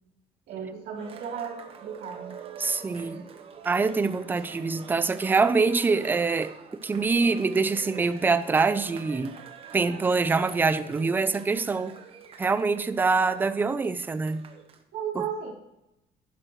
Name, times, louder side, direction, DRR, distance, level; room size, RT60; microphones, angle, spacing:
voice 1, 0.5-2.3 14.9-15.5, right 7 dB, 65° right, 3.2 m, -34 dB
Cheering, 1.0-14.8, right 7 dB, 35° right, 0.9 m, -46 dB
voice 2, 2.6-3.3 3.6-6.5 6.8-9.4 9.7-12.0 12.4-14.4 15.1-15.2, right 4 dB, 10° right, 0.4 m, -24 dB
11.0 x 10.5 x 3.1 m
cardioid pair, 175°, 17 cm